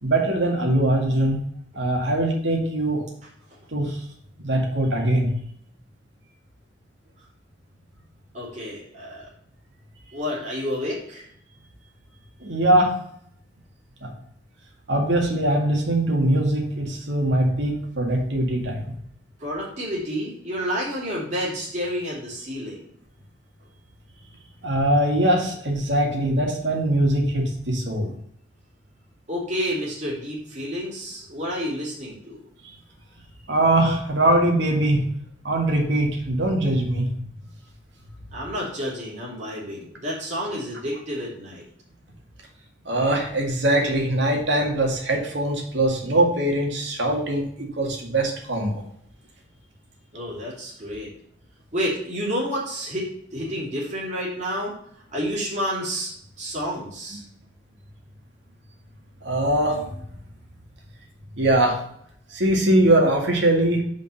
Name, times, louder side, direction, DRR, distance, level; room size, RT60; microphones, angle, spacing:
voice 1, 0.0-1.4 1.7-3.0 3.7-4.0 4.4-5.3 12.4-12.9 14.0-14.1 14.9-18.8 24.6-28.1 33.5-35.0 35.4-37.1 42.9-48.7 59.2-60.0 61.3-61.8 62.3-63.8, right 1 dB, 80° right, 1 dB, 2.0 m, -22 dB
voice 2, 8.3-9.3 10.1-11.3 19.4-22.9 29.3-32.4 38.3-41.6 50.1-51.1 51.7-54.8 55.1-57.2, equal, 40° right, -6 dB, 3.0 m, -30 dB
5.3 x 5.3 x 6.5 m, 0.68 s
head